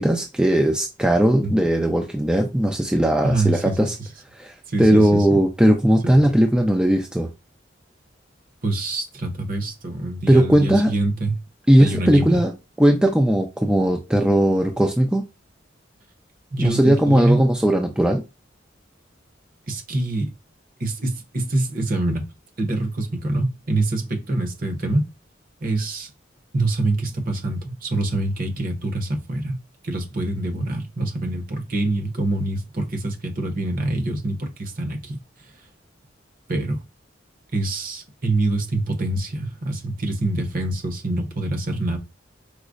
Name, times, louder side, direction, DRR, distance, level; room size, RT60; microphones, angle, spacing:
voice 1, 0.0-3.9 4.3-7.3 10.3-10.9 11.7-12.5 12.8-15.2 16.6-18.2, right 1 dB, 5° right, 0.3 m, -18 dB
voice 2, 3.2-3.9 4.7-5.4 6.0-6.3 8.6-11.3 11.8-12.4 16.5-17.4 19.7-20.3 20.8-22.2 22.6-25.1 25.6-26.1 26.5-35.2 36.5-36.8 37.5-42.0, right 2 dB, 50° right, 0.8 m, -25 dB
4.8 x 2.1 x 2.4 m
head